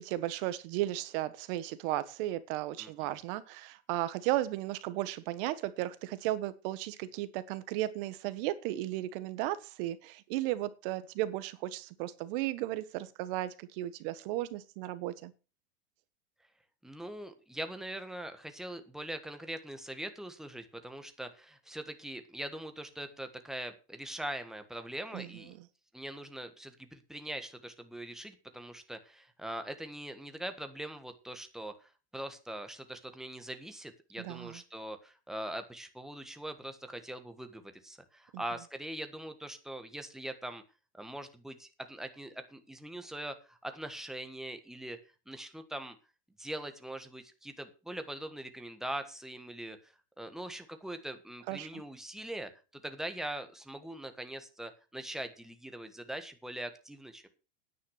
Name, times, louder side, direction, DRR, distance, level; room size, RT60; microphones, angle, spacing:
voice 1, 0.0-15.3 25.1-25.3 25.6-25.7 34.2-34.6 38.3-38.4 51.5-51.8, right 15 dB, 55° right, 15 dB, 1.5 m, -35 dB
voice 2, 2.8-3.1 16.8-25.5 25.9-31.7 32.1-40.6 40.9-45.0 45.3-45.9 46.4-49.8 50.2-57.3, right 1 dB, ahead, 7 dB, 1.5 m, -42 dB
9.9 x 9.3 x 6.6 m, 0.33 s
supercardioid pair, 150°, 33 cm